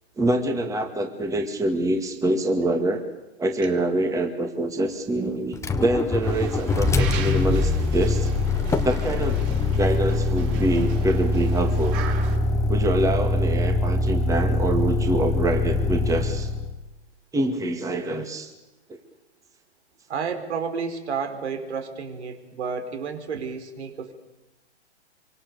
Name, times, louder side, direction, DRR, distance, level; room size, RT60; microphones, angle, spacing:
voice 1, 0.2-3.0 3.4-8.3 8.8-9.5 9.8-12.0 12.7-16.5 17.3-18.5 18.9-19.0, right 1 dB, 10° right, 5 dB, 2.1 m, -25 dB
Motor vehicle (road), 5.5-16.7, left 3 dB, 10° left, 1.3 m, -23 dB
sound 1, 6.2-12.4, right 8 dB, 40° right, 4.6 m, -38 dB
voice 2, 20.1-24.1, right 5 dB, 75° right, 6 dB, 4.6 m, -31 dB
26.0 x 24.5 x 7.0 m, 1.0 s
hypercardioid pair, 140°, 34 cm